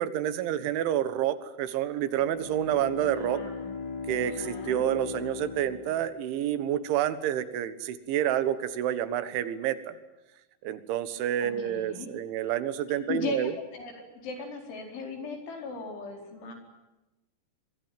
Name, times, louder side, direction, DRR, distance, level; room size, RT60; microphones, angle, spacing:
voice 1, 0.0-3.4 4.1-10.0 10.6-13.6, right 11 dB, 85° right, 13 dB, 3.9 m, -29 dB
Bowed string instrument, 2.1-6.7, left 4 dB, 55° left, 5.8 m, -39 dB
voice 2, 3.0-3.7 4.3-4.8 11.4-12.1 13.1-16.5, left 5 dB, 85° left, 4 dB, 6.9 m, -38 dB
25.5 x 22.0 x 9.3 m, 1.1 s
omnidirectional pair, 5.3 m